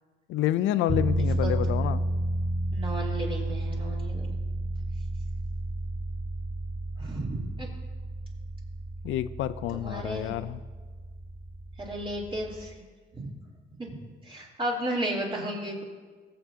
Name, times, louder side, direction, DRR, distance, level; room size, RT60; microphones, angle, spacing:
voice 1, 0.3-2.0 9.0-10.6, left 12 dB, 85° left, 15 dB, 0.4 m, -28 dB
sound 1, 0.9-12.8, right 1 dB, 10° right, 0.7 m, -32 dB
voice 2, 2.7-4.3 7.0-7.7 9.7-10.3 11.8-12.7 13.1-13.3 13.8-13.9 14.2-15.8, right 1 dB, 25° right, -4 dB, 3.2 m, -33 dB
22.5 x 7.5 x 2.8 m, 1.4 s
cardioid pair, 90°, 20 cm